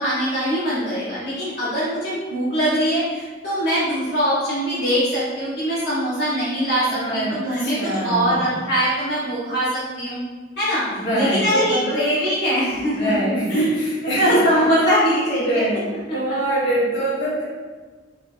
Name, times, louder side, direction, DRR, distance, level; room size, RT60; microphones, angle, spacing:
voice 1, 0.0-6.8 7.1-10.2 10.6-13.1 13.5-13.7 14.1-15.6 16.3-16.4, equal, 60° left, -11 dB, 0.8 m, -22 dB
voice 2, 6.9-8.6 10.9-12.0 12.9-14.5 15.3-15.9 16.1-17.4, right 1 dB, 85° left, -8 dB, 1.2 m, -23 dB
3.1 x 2.5 x 2.4 m, 1.4 s
head